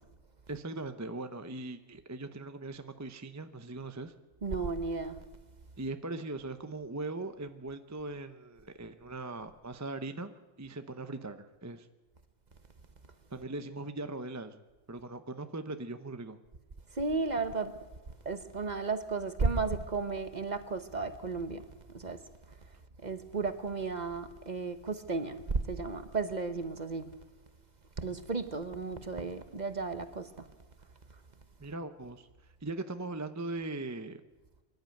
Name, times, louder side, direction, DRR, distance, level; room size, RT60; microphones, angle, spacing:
voice 1, 0.5-4.1 5.8-11.9 13.3-14.6 14.9-16.4 31.6-32.3 32.6-34.2, right 2 dB, 15° right, 0.7 m, -40 dB
voice 2, 4.4-5.2 17.0-17.7 18.2-21.6 21.9-22.2 23.0-27.1 28.0-30.3, right 4 dB, 35° right, 1.1 m, -34 dB
24.5 x 12.0 x 9.2 m
omnidirectional pair, 1.3 m